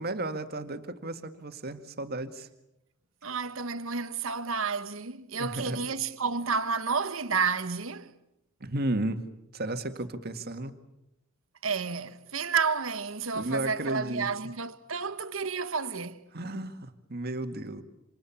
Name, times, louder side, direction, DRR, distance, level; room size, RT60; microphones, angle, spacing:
voice 1, 0.0-2.5 5.4-5.9 8.6-9.2 9.5-10.8 13.3-14.3 16.3-17.8, right 1 dB, 50° right, 2.0 m, -33 dB
voice 2, 3.2-8.1 11.6-16.2, right 5 dB, 80° right, 1.3 m, -31 dB
27.5 x 27.0 x 7.3 m
head